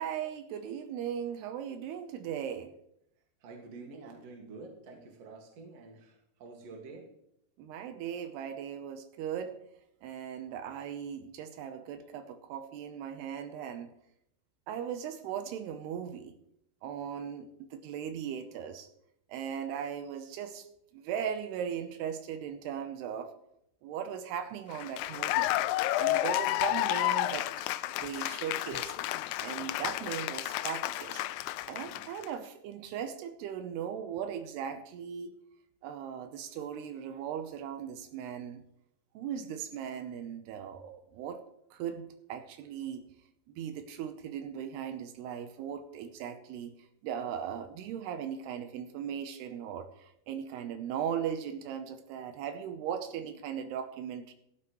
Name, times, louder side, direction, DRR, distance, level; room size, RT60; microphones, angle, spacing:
voice 1, 0.0-2.7 7.6-9.6 10.0-13.9 14.7-16.4 16.8-18.9 19.3-20.7 20.9-23.3 23.8-25.5 26.0-27.7 28.0-28.9 29.4-31.2 31.7-35.3 35.8-38.6 39.1-41.4 41.7-43.0 43.6-46.7 47.0-54.3, right 8 dB, 85° right, 8 dB, 2.8 m, -38 dB
voice 2, 3.4-7.2 31.8-32.0, right 3 dB, 50° right, 2 dB, 2.5 m, -48 dB
Cheering / Applause, 24.7-32.3, left 16 dB, 80° left, 2.4 m, -31 dB
15.0 x 12.0 x 3.1 m, 0.76 s
omnidirectional pair, 4.7 m